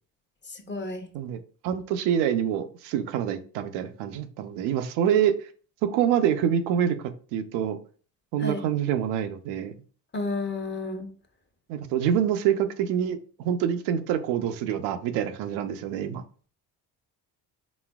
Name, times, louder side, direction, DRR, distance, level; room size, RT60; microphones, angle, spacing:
voice 1, 0.5-1.1 8.4-8.6 10.1-11.1, left 2 dB, 30° left, 5 dB, 0.8 m, -31 dB
voice 2, 1.1-5.5 5.8-7.8 8.3-9.7 11.7-16.2, right 9 dB, 85° right, 8 dB, 0.6 m, -26 dB
4.1 x 3.8 x 2.3 m, 0.41 s
supercardioid pair, 75°, 39 cm